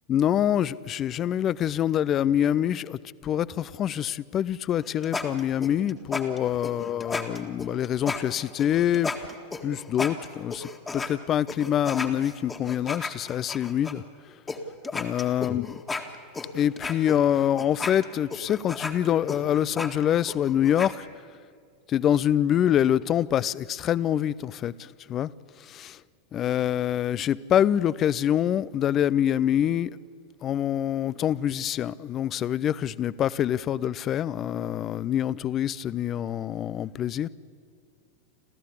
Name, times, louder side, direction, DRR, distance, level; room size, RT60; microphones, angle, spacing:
voice 1, 0.1-9.1 9.6-14.0 14.9-15.8 16.5-21.1 21.9-25.3 25.6-26.0 26.3-29.9 30.4-37.3, left 10 dB, 30° left, 0.5 m, -25 dB
sound 1, 4.7-11.1 11.5-13.9 14.5-14.6 14.8-20.9, left 3 dB, 15° left, 1.8 m, -34 dB
28.5 x 14.5 x 8.4 m
figure-of-eight pair, 90°, 0 cm